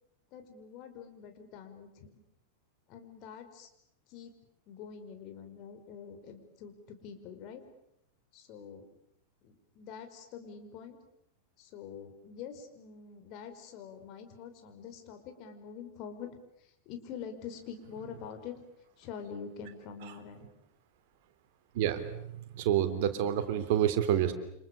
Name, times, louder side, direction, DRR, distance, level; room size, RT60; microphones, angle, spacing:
voice 1, 0.3-2.2 2.9-3.7 4.1-4.3 4.7-7.6 8.3-8.9 9.4-11.0 11.6-18.5 19.0-20.5, left 7 dB, 40° left, 6 dB, 5.0 m, -46 dB
voice 2, 21.7-24.3, right 10 dB, 50° right, 9 dB, 3.4 m, -28 dB
29.5 x 27.0 x 6.9 m, 0.78 s
figure-of-eight pair, 90°, 0 cm